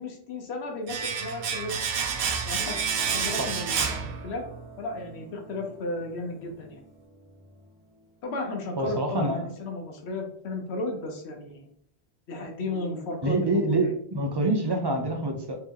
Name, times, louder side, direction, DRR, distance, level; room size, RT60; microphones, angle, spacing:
voice 1, 0.0-1.9 2.5-2.8 3.1-4.4 4.8-6.8 8.2-11.7 12.3-13.9, left 2 dB, 85° left, 2 dB, 1.0 m, -34 dB
Domestic sounds home sounds, 0.9-4.7 4.9-5.1, right 6 dB, 70° right, 0.7 m, -29 dB
sound 1, 2.5-9.5 10.4-10.5, equal, 30° left, 1.4 m, -47 dB
voice 2, 8.8-9.5 13.2-15.6, right 2 dB, 30° right, 3 dB, 0.5 m, -26 dB
3.3 x 2.9 x 3.5 m, 0.62 s
omnidirectional pair, 1.1 m